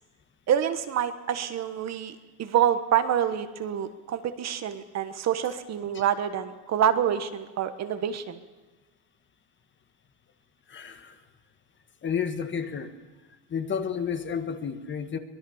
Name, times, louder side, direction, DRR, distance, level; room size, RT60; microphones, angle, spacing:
voice 1, 0.5-8.4, right 9 dB, 40° right, 10 dB, 1.3 m, -27 dB
voice 2, 10.7-11.1 12.0-12.9 13.5-15.2, left 7 dB, 25° left, 9 dB, 1.5 m, -31 dB
24.0 x 19.5 x 7.2 m, 1.2 s
cardioid pair, 150°, 42 cm